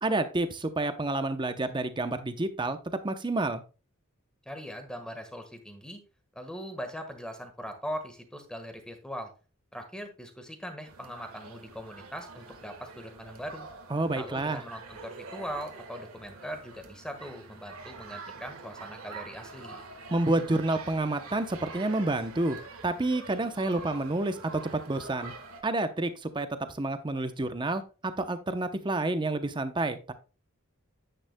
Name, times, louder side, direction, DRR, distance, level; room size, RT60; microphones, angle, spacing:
voice 1, 0.0-2.8 3.0-3.6 13.9-14.6 20.1-22.6 22.8-25.3 25.6-30.1, right 2 dB, 20° right, 9 dB, 0.7 m, -29 dB
voice 2, 4.4-6.0 6.3-9.3 9.7-13.7 14.1-19.8, equal, 5° left, 6 dB, 1.4 m, -40 dB
sound 1, 10.9-25.6, right 3 dB, 85° right, 1.5 m, -46 dB
9.9 x 9.2 x 2.2 m, 0.33 s
head